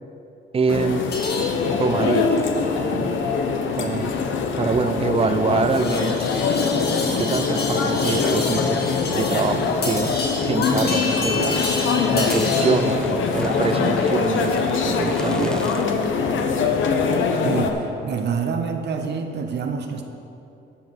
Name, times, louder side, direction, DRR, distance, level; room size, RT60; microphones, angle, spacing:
voice 1, 0.5-1.1 1.8-2.4 2.9-3.1 3.8-4.2 4.6-6.2 7.2-8.8 9.1-10.1 10.4-11.6 12.1-15.8, right 5 dB, 30° right, 12 dB, 0.5 m, -25 dB
sound 1, 0.7-17.7, left 5 dB, 75° left, 1.0 m, -23 dB
sound 2, 1.1-12.9, left 2 dB, 50° left, 1.8 m, -32 dB
sound 3, 12.2-16.4, equal, 5° left, 0.9 m, -40 dB
voice 2, 17.4-20.0, right 6 dB, 60° right, 4 dB, 0.8 m, -27 dB
12.5 x 5.6 x 5.9 m, 2.7 s
cardioid pair, 90°, 20 cm